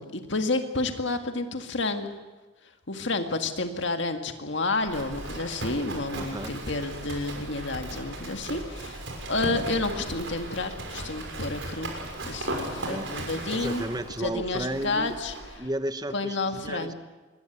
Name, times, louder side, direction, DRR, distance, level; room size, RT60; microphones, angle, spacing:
voice 1, 0.0-2.1 2.9-9.0 9.3-11.9 12.3-13.8 14.2-15.3 16.1-16.9, left 2 dB, 60° left, 6 dB, 1.9 m, -30 dB
Livestock farm animals working animals, 4.8-15.6, right 1 dB, 60° right, 6.2 m, -37 dB
voice 2, 6.1-6.5 12.6-13.1 13.5-15.2 15.6-16.9, right 1 dB, 20° right, 10 dB, 1.1 m, -33 dB
25.0 x 21.5 x 8.2 m, 1.2 s
head